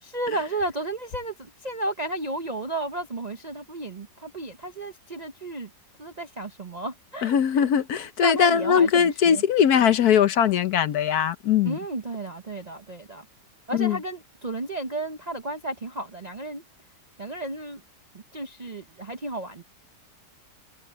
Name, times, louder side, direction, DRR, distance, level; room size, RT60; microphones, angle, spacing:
voice 1, 0.0-5.7 6.0-7.7 8.0-9.4 11.6-13.3 13.7-16.6 17.2-17.8 18.1-19.6, right 2 dB, 40° right, 0.6 m, -33 dB
voice 2, 7.2-11.8 13.7-14.0, left 8 dB, 65° left, 1.3 m, -21 dB
omnidirectional pair, 1.9 m